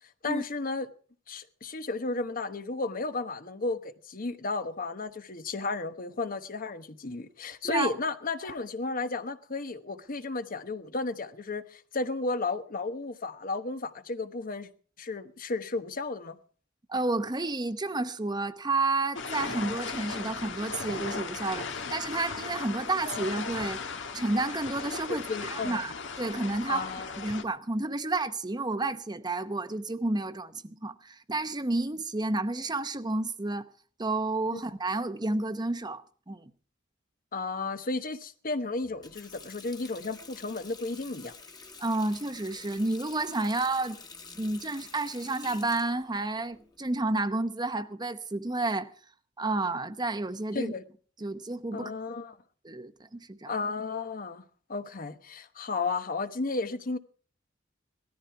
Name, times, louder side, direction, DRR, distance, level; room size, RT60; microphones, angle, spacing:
voice 1, 0.2-0.9 1.3-14.7 15.0-16.4 25.1-25.8 26.7-27.2 34.5-34.6 37.3-41.3 50.5-50.8 51.7-52.4 53.5-54.4 54.7-57.0, left 3 dB, 45° left, 1.1 m, -33 dB
voice 2, 7.6-8.0 16.9-23.8 24.1-33.7 34.0-36.0 36.3-36.5 41.8-44.0 44.3-48.9 49.4-50.7 51.2-51.9 52.6-53.5, right 2 dB, 20° right, 0.9 m, -31 dB
sound 1, 19.2-27.4, left 5 dB, 70° left, 1.6 m, -37 dB
sound 2, 20.0-25.5, left 3 dB, 85° left, 1.7 m, -51 dB
Water tap faucet, 38.8-47.3, left 4 dB, 20° left, 1.6 m, -49 dB
18.0 x 13.5 x 4.7 m
head